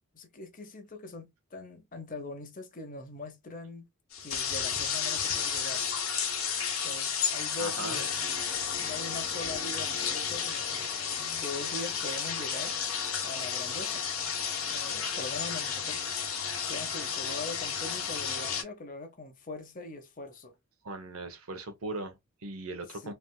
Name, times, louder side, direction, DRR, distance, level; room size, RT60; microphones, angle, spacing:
voice 1, 0.1-3.9 4.2-5.8 6.8-8.1 8.8-12.8 13.2-14.1 14.7-16.0 16.6-20.5 23.0-23.1, left 2 dB, 40° left, 0.8 m, -42 dB
sound 1, 4.1-18.6, left 7 dB, 75° left, 1.0 m, -32 dB
voice 2, 7.6-8.0 20.8-23.1, right 2 dB, 85° right, 1.0 m, -39 dB
3.2 x 2.7 x 2.3 m
head